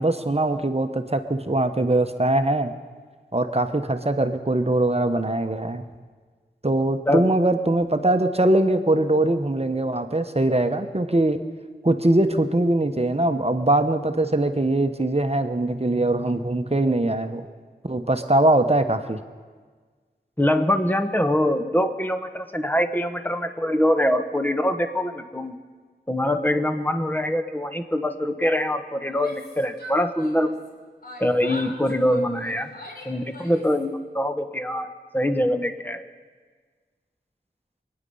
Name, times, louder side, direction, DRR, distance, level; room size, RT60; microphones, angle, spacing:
voice 1, 0.0-2.7 3.3-5.8 6.6-11.4 11.8-17.5 17.8-19.2, right 2 dB, 35° right, 7 dB, 1.0 m, -22 dB
voice 2, 20.4-25.6 26.1-30.6 31.2-32.7 33.0-34.9 35.1-36.0, left 1 dB, 10° left, 7 dB, 1.2 m, -23 dB
Yell, 29.1-30.7 31.0-33.8, equal, 60° left, 3.3 m, -42 dB
26.0 x 9.9 x 5.5 m, 1.5 s
wide cardioid pair, 45°, 18 cm